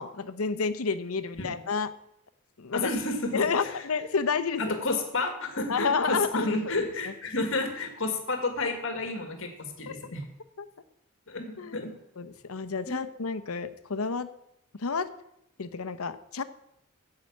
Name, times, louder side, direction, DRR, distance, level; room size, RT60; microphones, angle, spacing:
voice 1, 0.0-1.9 2.6-2.9 3.3-4.7 5.7-6.5 9.9-10.0 11.6-11.8 12.2-14.3 14.8-15.1 15.6-16.4, left 5 dB, 75° left, 12 dB, 0.8 m, -30 dB
voice 2, 2.7-3.8 4.6-10.3 11.3-11.9 12.9-13.0, left 2 dB, 60° left, 5 dB, 1.9 m, -31 dB
9.7 x 7.6 x 8.6 m, 0.80 s
head